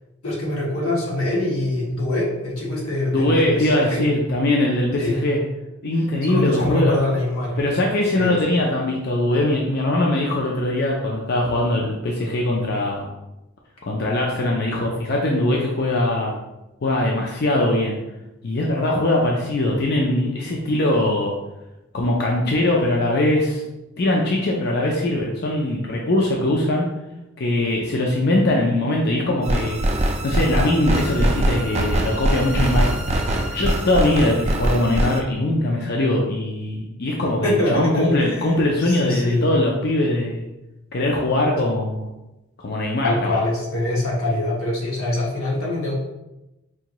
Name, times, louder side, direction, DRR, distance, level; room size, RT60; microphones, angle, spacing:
voice 1, 0.2-4.0 5.0-5.2 6.3-7.6 8.1-8.6 37.4-38.5 38.8-39.5 43.0-45.9, left 2 dB, 90° left, -4 dB, 1.4 m, -24 dB
voice 2, 3.1-5.4 5.8-6.9 7.6-13.1 13.8-16.4 16.8-18.0 18.4-21.3 21.9-23.6 24.0-26.9 27.4-29.8 30.2-33.1 33.5-40.5 40.9-42.1 42.6-43.4, left 1 dB, 50° left, -1 dB, 0.5 m, -21 dB
sound 1, 29.4-35.2, right 1 dB, 30° right, 0.3 m, -22 dB
4.7 x 2.6 x 3.0 m, 0.95 s
head